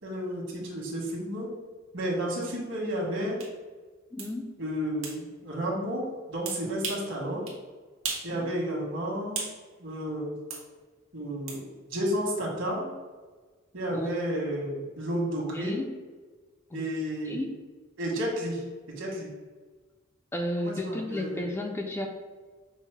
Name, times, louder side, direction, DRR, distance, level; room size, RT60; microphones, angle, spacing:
voice 1, 0.0-1.5 1.9-3.4 4.6-7.5 8.2-9.4 9.8-10.4 11.1-12.9 13.7-15.9 16.7-17.4 18.0-18.6 19.0-19.3 20.6-21.5, equal, 65° right, -2 dB, 1.3 m, -32 dB
sound 1, 3.4-3.5 4.2-4.3 5.0-5.2 6.5-7.1 7.5-7.6 8.0-8.3 8.7-9.6 10.5-10.7 11.5-11.6, right 5 dB, 80° right, 1.0 m, -35 dB
voice 2, 4.1-4.5 8.3-8.5 13.9-14.1 15.5-15.9 16.7-16.8 17.3-17.6 20.3-22.1, left 1 dB, 10° left, 2 dB, 0.3 m, -33 dB
5.4 x 2.0 x 4.5 m, 1.4 s
head